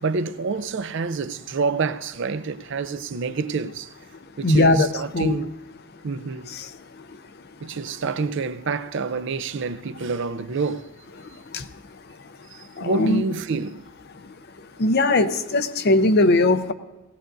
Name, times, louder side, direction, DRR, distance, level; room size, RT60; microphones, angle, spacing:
voice 1, 0.0-3.9 4.4-5.6 6.0-6.5 7.6-10.9 12.5-13.9, right 4 dB, 60° right, 0.5 m, -27 dB
voice 2, 4.4-4.9 5.1-5.4 6.5-6.7 11.5-11.6 12.8-13.2 14.8-16.7, left 2 dB, 50° left, 0.6 m, -19 dB
18.5 x 16.5 x 2.6 m
head